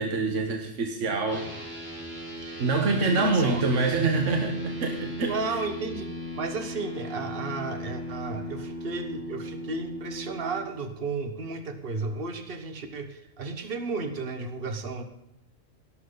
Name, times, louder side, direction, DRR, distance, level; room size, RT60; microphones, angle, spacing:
voice 1, 0.0-1.5 2.6-5.3 8.3-8.5, right 3 dB, 70° right, 3 dB, 1.6 m, -25 dB
sound 1, 1.3-10.6, equal, 10° right, 4.4 m, -37 dB
voice 2, 3.0-3.7 5.3-15.0, right 4 dB, 50° right, 8 dB, 1.4 m, -33 dB
17.5 x 12.0 x 4.0 m, 0.87 s
omnidirectional pair, 1.3 m